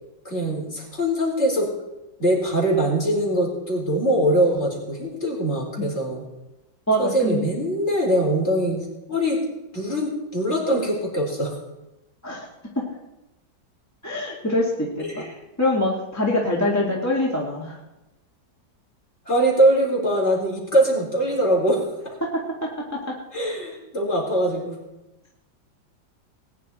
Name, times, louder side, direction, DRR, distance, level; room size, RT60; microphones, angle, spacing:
voice 1, 0.2-1.7 2.2-6.2 7.0-9.4 9.7-11.6 15.0-15.3 16.9-17.0 19.2-22.1 23.3-24.8, right 1 dB, 35° left, -3 dB, 4.4 m, -22 dB
voice 2, 6.9-7.4 12.2-12.5 14.0-15.2 15.6-17.8 22.3-22.7, left 1 dB, 10° left, -3 dB, 2.1 m, -24 dB
20.0 x 10.0 x 4.3 m, 0.97 s
omnidirectional pair, 2.1 m